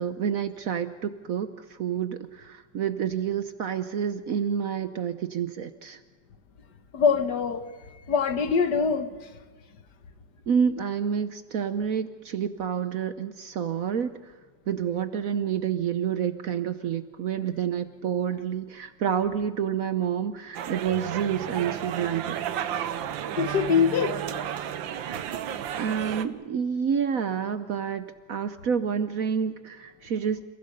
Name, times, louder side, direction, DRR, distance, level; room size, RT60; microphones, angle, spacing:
voice 1, 0.0-6.0 10.5-14.3 14.7-22.4 25.8-30.4, right 7 dB, 60° right, 11 dB, 1.0 m, -28 dB
voice 2, 6.9-7.6 8.1-9.1 23.4-24.2, left 6 dB, 65° left, 9 dB, 1.8 m, -23 dB
sound 1, 20.5-26.3, right 10 dB, 85° right, 1.6 m, -32 dB
28.5 x 15.5 x 6.7 m, 1.5 s
omnidirectional pair, 2.0 m